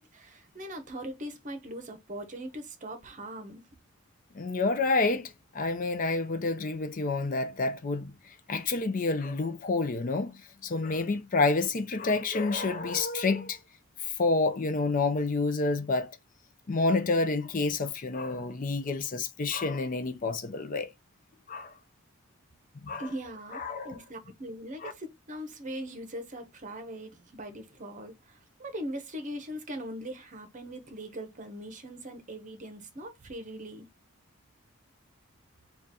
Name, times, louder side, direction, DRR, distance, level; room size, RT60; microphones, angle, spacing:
voice 1, 0.0-3.6 23.0-33.9, right 1 dB, 35° right, 0.8 m, -40 dB
voice 2, 4.3-13.6 14.0-16.2 16.7-20.9 21.5-21.7 22.8-23.1 23.5-24.0 24.8-24.9, left 3 dB, 40° left, 0.5 m, -29 dB
3.8 x 2.4 x 4.0 m
head